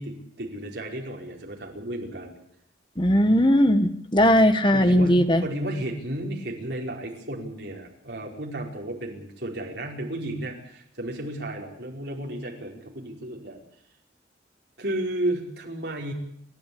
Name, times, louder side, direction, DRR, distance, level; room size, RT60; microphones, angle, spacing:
voice 1, 0.0-2.3 4.7-13.6 14.8-16.1, right 1 dB, 65° right, 1 dB, 5.0 m, -33 dB
voice 2, 3.0-5.4, equal, 25° left, 9 dB, 1.6 m, -19 dB
29.5 x 12.0 x 8.7 m, 0.69 s
head